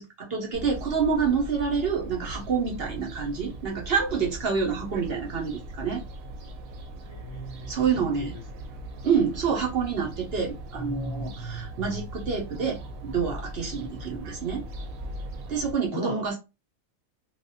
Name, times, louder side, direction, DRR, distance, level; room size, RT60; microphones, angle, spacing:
voice 1, 0.0-6.0 7.7-8.3 9.0-14.6 15.5-16.4, right 6 dB, 55° right, 0.8 m, -27 dB
Fowl, 0.5-15.7, right 1 dB, 80° right, 1.1 m, -40 dB
voice 2, 7.1-8.4 15.9-16.4, left 1 dB, 40° left, 0.4 m, -38 dB
3.2 x 2.2 x 2.6 m
omnidirectional pair, 1.4 m